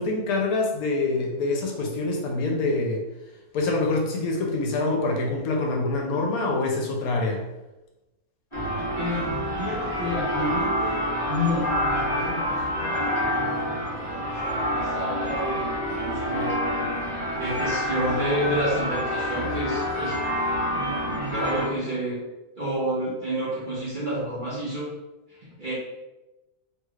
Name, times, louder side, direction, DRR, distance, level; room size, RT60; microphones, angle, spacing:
voice 1, 0.0-3.0 3.5-7.4, left 2 dB, 80° left, 1 dB, 1.1 m, -25 dB
sound 1, 8.5-21.7, equal, 20° left, 1.2 m, -27 dB
voice 2, 9.0-16.8 17.3-20.2 20.6-22.2 22.6-24.9 25.3-25.7, equal, 50° right, -7 dB, 0.6 m, -30 dB
3.1 x 3.1 x 2.3 m, 1.0 s
omnidirectional pair, 1.6 m